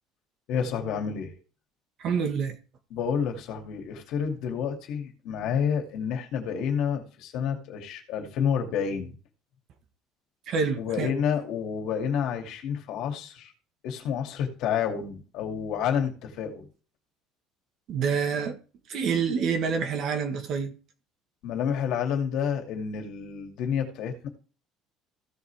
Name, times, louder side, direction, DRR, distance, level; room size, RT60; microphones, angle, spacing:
voice 1, 0.5-1.3 2.9-9.2 10.8-13.5 13.8-16.7 21.4-24.3, left 7 dB, 55° left, 2.5 m, -29 dB
voice 2, 2.0-2.5 10.5-11.1 17.9-18.6 18.9-20.7, right 6 dB, 40° right, 1.6 m, -27 dB
15.5 x 5.5 x 3.5 m
cardioid pair, 170°, 0 cm